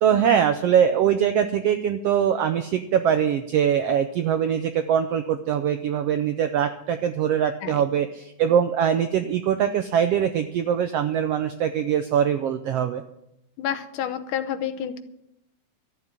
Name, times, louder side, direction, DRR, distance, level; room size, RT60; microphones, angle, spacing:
voice 1, 0.0-13.0, right 8 dB, 90° right, 8 dB, 1.4 m, -22 dB
voice 2, 13.6-15.0, left 9 dB, 85° left, 10 dB, 2.5 m, -29 dB
13.5 x 7.5 x 9.6 m, 0.84 s
omnidirectional pair, 3.6 m